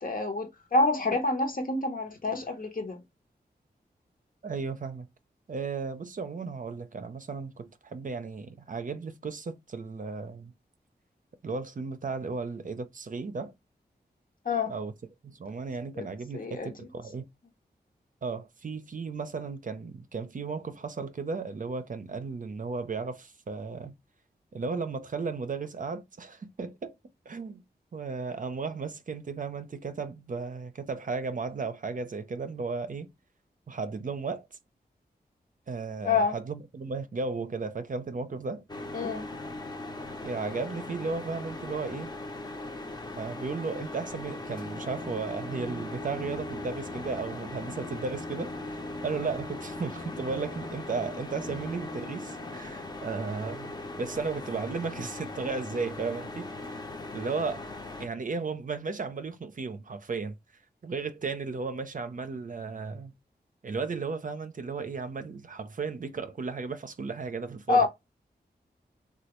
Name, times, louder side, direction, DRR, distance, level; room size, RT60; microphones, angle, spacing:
voice 1, 0.0-3.0 14.4-14.7 16.0-16.1 16.3-16.9 36.0-36.4 38.9-39.2 67.7-67.9, left 3 dB, 55° left, 0.9 m, -27 dB
voice 2, 4.4-5.1 5.5-10.5 11.4-13.5 14.7-14.9 15.2-17.3 18.2-23.9 24.5-26.9 27.3-27.6 27.9-33.1 33.7-34.6 35.7-38.6 40.2-42.1 43.1-56.9 57.1-57.7 58.0-60.3 60.8-63.1 63.6-67.9, right 4 dB, 50° right, 0.5 m, -35 dB
sound 1, 38.7-58.1, left 2 dB, 25° left, 0.7 m, -39 dB
Bowed string instrument, 44.4-52.9, left 2 dB, 80° left, 0.7 m, -45 dB
3.2 x 2.3 x 2.9 m
cardioid pair, 60°, 17 cm